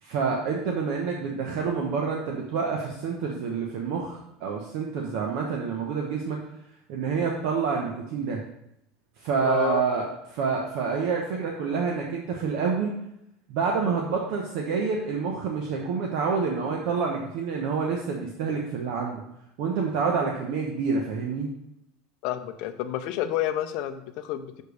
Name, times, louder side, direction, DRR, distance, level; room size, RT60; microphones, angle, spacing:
voice 1, 0.0-6.4 6.9-8.4 9.2-12.9 13.5-19.2 19.6-21.5, right 5 dB, 55° right, 0 dB, 1.0 m, -28 dB
voice 2, 9.4-9.8 22.2-24.6, left 11 dB, 50° left, 9 dB, 0.7 m, -29 dB
6.6 x 5.1 x 6.5 m, 0.80 s
cardioid pair, 175°, 0 cm